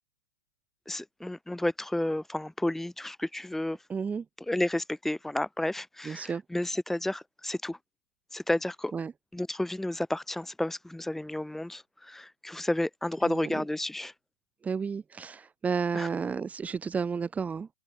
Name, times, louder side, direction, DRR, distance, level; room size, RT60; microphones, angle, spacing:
voice 1, 0.9-3.8 4.5-7.8 8.3-8.9 9.3-14.1 15.9-16.1, left 1 dB, 5° left, 3.1 m, -31 dB
voice 2, 3.9-4.2 6.0-6.4 8.9-9.1 13.2-13.5 14.6-17.7, right 6 dB, 15° right, 3.0 m, -32 dB
open air
hypercardioid pair, 125°, 10 cm